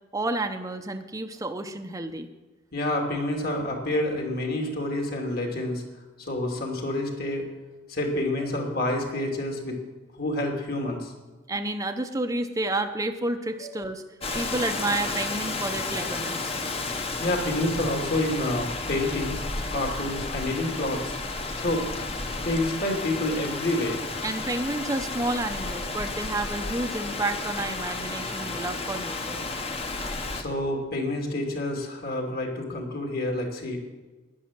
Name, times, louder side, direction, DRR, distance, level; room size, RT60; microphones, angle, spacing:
voice 1, 0.1-2.3 11.5-14.0 14.3-16.6 24.2-29.4, right 2 dB, 15° right, 6 dB, 0.8 m, -30 dB
voice 2, 2.7-5.8 6.2-7.5 7.9-9.8 10.2-11.1 13.6-13.7 14.3-14.5 17.2-21.9 22.4-24.0 30.3-33.8, left 1 dB, 50° left, 2 dB, 2.9 m, -28 dB
Rain, 14.2-30.4, left 3 dB, 30° left, 1.2 m, -32 dB
11.0 x 10.5 x 7.6 m, 1.3 s
head